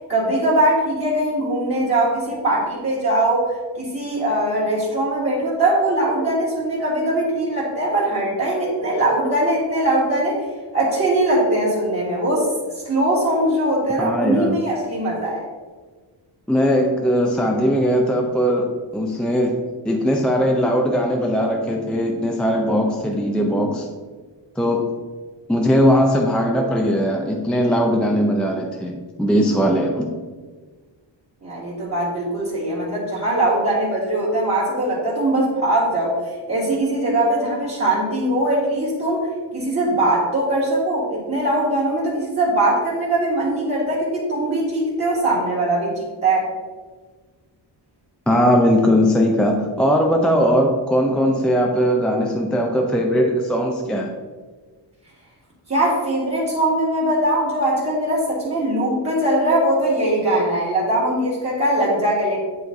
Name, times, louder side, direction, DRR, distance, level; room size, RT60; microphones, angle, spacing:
voice 1, 0.1-10.4 10.7-15.4 31.4-46.5 55.7-62.4, right 1 dB, 30° right, -8 dB, 1.9 m, -21 dB
voice 2, 14.0-14.6 16.5-23.9 24.6-24.9 25.5-30.1 48.3-54.1, equal, ahead, 1 dB, 0.5 m, -19 dB
9.5 x 3.2 x 3.9 m, 1.4 s
wide cardioid pair, 110°, 45 cm